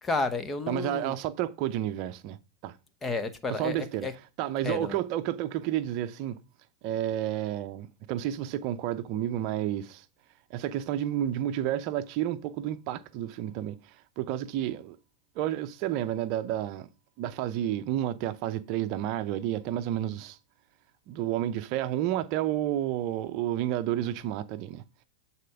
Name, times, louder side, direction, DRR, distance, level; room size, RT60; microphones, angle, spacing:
voice 1, 0.0-1.1 3.0-4.1 4.6-5.0, left 3 dB, 20° left, 1.0 m, -31 dB
voice 2, 0.7-2.4 2.6-2.8 3.5-4.1 4.4-6.4 6.8-10.0 10.5-15.0 15.4-16.9 17.2-20.4 21.1-24.8, right 12 dB, 50° right, 0.6 m, -31 dB
8.2 x 4.3 x 3.4 m
hypercardioid pair, 115°, 0 cm